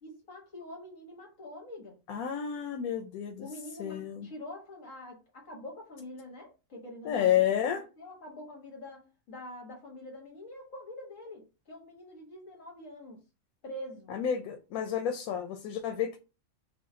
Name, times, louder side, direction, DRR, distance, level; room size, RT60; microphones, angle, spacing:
voice 1, 0.0-1.9 3.4-13.2 13.6-14.1, left 1 dB, 65° left, 1.6 m, -45 dB
voice 2, 2.1-3.5 3.8-4.3 7.0-7.8 14.1-16.2, left 9 dB, 85° left, 1.1 m, -30 dB
4.7 x 2.2 x 4.2 m
omnidirectional pair, 1.5 m